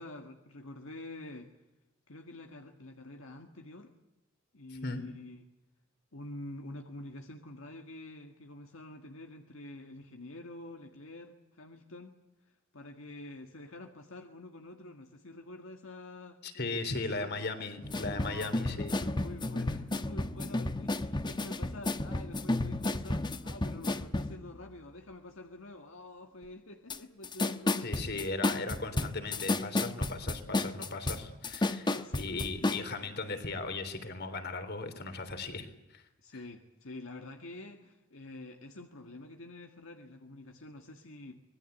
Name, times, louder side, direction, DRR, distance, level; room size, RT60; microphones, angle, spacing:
voice 1, 0.0-1.5 2.1-3.9 4.5-5.4 6.1-12.2 12.5-17.3 18.1-28.3 28.7-29.0 30.5-30.6 31.6-32.7 36.2-41.4, left 2 dB, 75° left, 4 dB, 1.8 m, -47 dB
voice 2, 16.4-18.9 27.8-36.0, left 3 dB, 55° left, 9 dB, 3.5 m, -37 dB
sound 1, 17.8-24.4 26.9-27.0 27.2-32.8, left 2 dB, 20° left, 1.0 m, -32 dB
25.0 x 20.5 x 8.2 m, 0.95 s
head